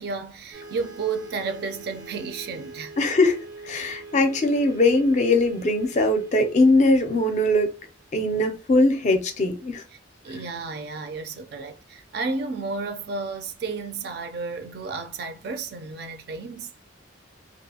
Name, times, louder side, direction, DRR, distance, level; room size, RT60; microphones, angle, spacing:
voice 1, 0.0-3.0 4.1-4.3 8.3-8.4 10.2-16.7, right 4 dB, 55° right, 0.4 m, -32 dB
sound 1, 0.5-8.3, right 3 dB, 85° right, 0.8 m, -44 dB
voice 2, 3.0-7.7 8.1-9.8, left 2 dB, 40° left, 0.4 m, -21 dB
2.6 x 2.3 x 2.7 m
head